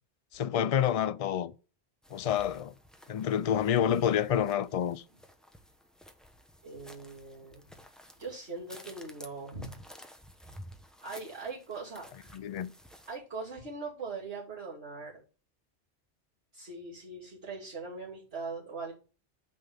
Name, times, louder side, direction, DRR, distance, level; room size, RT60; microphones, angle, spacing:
voice 1, 0.3-1.5 2.1-2.7 3.1-5.0 12.3-12.7, left 9 dB, 55° left, 0.4 m, -28 dB
sound 1, 2.0-13.2, equal, ahead, 0.8 m, -53 dB
voice 2, 6.6-7.6 8.2-9.8 11.0-12.3 13.1-15.2 16.5-18.9, right 4 dB, 70° right, 3.0 m, -41 dB
9.3 x 3.9 x 6.9 m
omnidirectional pair, 1.1 m